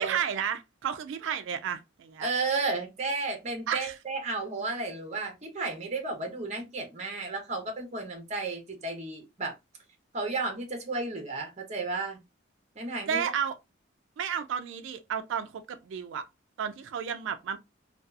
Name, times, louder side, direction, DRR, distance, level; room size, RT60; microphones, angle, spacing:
voice 1, 0.0-2.3 3.7-4.0 13.1-13.6 14.2-16.3 16.6-17.6, right 8 dB, 75° right, 0.3 m, -32 dB
voice 2, 2.2-9.5 10.1-12.2 12.8-13.2, right 3 dB, 35° right, 0.7 m, -33 dB
2.6 x 2.3 x 2.3 m
head